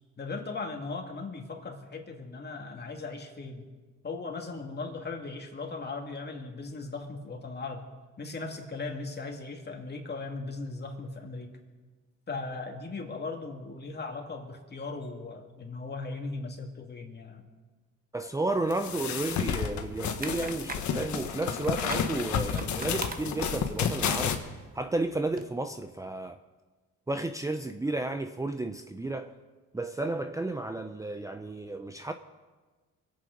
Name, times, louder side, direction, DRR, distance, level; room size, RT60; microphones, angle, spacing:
voice 1, 0.2-3.7 4.0-7.8 8.2-11.6 12.3-17.5, left 3 dB, 35° left, 3 dB, 2.4 m, -38 dB
voice 2, 18.1-24.4 24.7-26.4 27.1-29.3 29.7-32.1, right 2 dB, 10° right, 8 dB, 0.6 m, -32 dB
sound 1, 18.7-24.3, left 7 dB, 70° left, 1.4 m, -31 dB
sound 2, 20.0-25.5, right 4 dB, 30° right, 1.2 m, -44 dB
22.5 x 8.7 x 5.3 m, 1.3 s
cardioid pair, 90°, 30 cm